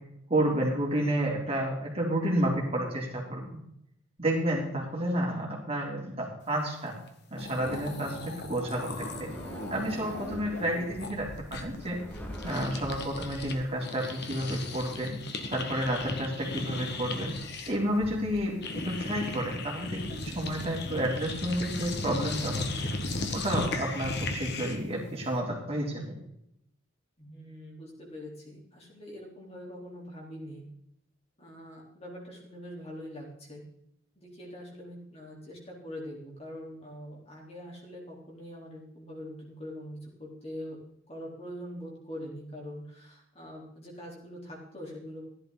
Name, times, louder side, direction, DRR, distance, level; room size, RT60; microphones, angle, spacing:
voice 1, 0.3-3.4 4.2-7.0 7.3-9.3 9.7-12.0 12.4-15.1 15.5-17.3 17.7-18.5 18.8-22.7 23.3-26.0, right 1 dB, 30° right, -2 dB, 3.5 m, -30 dB
sound 1, 7.1-7.2 7.3-13.6 13.8-24.9, left 2 dB, 55° left, 1.6 m, -37 dB
sound 2, 7.4-13.6, equal, 10° left, 1.9 m, -43 dB
voice 2, 27.2-30.6 31.4-33.6 34.2-40.8 41.1-45.2, equal, 30° left, -2 dB, 3.8 m, -43 dB
15.5 x 11.0 x 4.0 m, 0.76 s
head